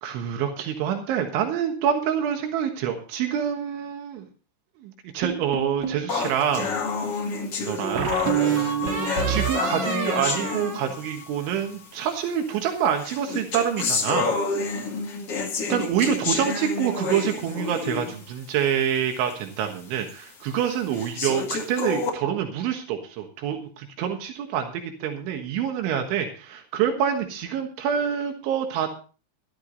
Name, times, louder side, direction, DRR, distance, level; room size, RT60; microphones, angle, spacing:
voice 1, 0.0-4.3 4.8-6.7 7.6-8.2 8.5-8.8 9.3-14.3 14.8-14.9 15.7-28.9, right 9 dB, 85° right, 4 dB, 3.9 m, -26 dB
sound 1, 5.2-6.1 7.9-11.6, right 7 dB, 50° right, 1.8 m, -28 dB
sound 2, 6.1-11.2 12.1-12.2 13.0-18.2 18.7-18.8 19.3-19.4 20.1-20.2 20.9-22.1, left 4 dB, 40° left, 2.4 m, -29 dB
13.5 x 13.0 x 3.9 m, 0.37 s
omnidirectional pair, 5.3 m